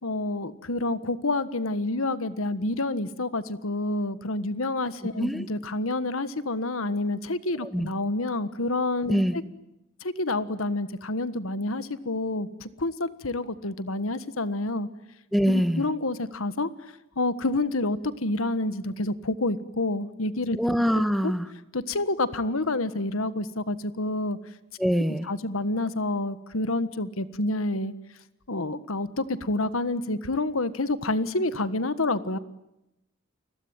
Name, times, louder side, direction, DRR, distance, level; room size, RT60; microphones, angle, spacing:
voice 1, 0.0-9.4 10.0-14.9 15.5-16.7 17.2-20.6 20.9-21.3 21.7-24.4 25.2-27.9 28.5-32.4, left 2 dB, 80° left, 13 dB, 1.5 m, -28 dB
voice 2, 15.3-15.9 20.6-21.5 24.8-25.3, equal, ahead, 11 dB, 1.4 m, -24 dB
29.5 x 21.5 x 9.0 m, 0.87 s
head